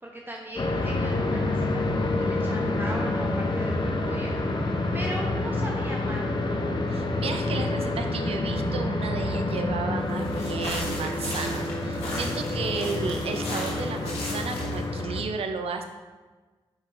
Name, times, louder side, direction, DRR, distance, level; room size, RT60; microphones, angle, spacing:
voice 1, 0.0-4.3 4.9-6.3, right 1 dB, 20° right, -1 dB, 0.9 m, -38 dB
sound 1, 0.6-15.2, left 2 dB, 45° left, 0.9 m, -28 dB
voice 2, 6.9-15.8, right 4 dB, 70° right, 6 dB, 0.7 m, -33 dB
sound 2, 10.1-14.9, left 2 dB, 90° left, 1.4 m, -37 dB
6.2 x 5.3 x 3.3 m, 1.3 s
supercardioid pair, 40°, 10 cm